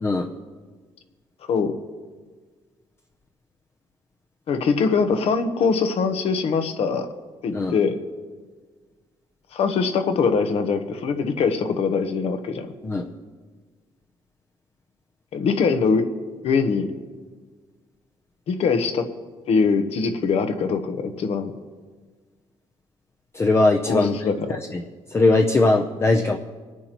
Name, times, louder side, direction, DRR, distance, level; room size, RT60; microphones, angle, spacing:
voice 1, 4.5-7.1 7.4-8.0 9.5-12.7 15.3-16.1 16.4-17.0 18.5-19.1 19.5-21.5 23.9-24.6, left 5 dB, 65° left, 8 dB, 1.0 m, -22 dB
voice 2, 23.3-24.2 24.7-24.8 25.1-26.4, left 2 dB, 25° left, 3 dB, 0.6 m, -19 dB
26.0 x 9.4 x 3.0 m, 1.5 s
cardioid pair, 125°, 11 cm